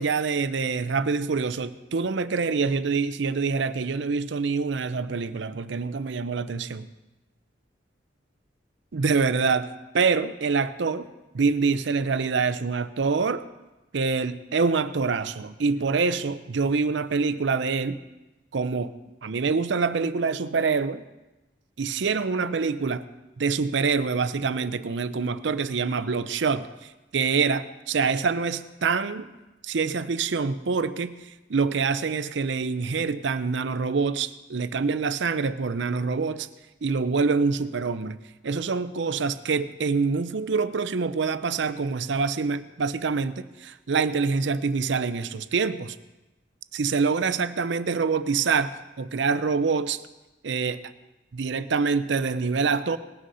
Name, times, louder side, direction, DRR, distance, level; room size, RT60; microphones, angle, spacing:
voice 1, 0.0-6.9 8.9-9.7 9.9-11.1 11.3-13.4 13.9-18.0 18.5-18.9 19.2-21.0 21.8-23.1 23.4-29.3 29.6-31.2 31.5-36.5 36.8-46.0 46.7-48.7 49.0-50.0 50.4-50.8 51.3-53.0, right 4 dB, 70° right, 13 dB, 0.6 m, -25 dB
19.0 x 6.4 x 5.5 m, 1.0 s
head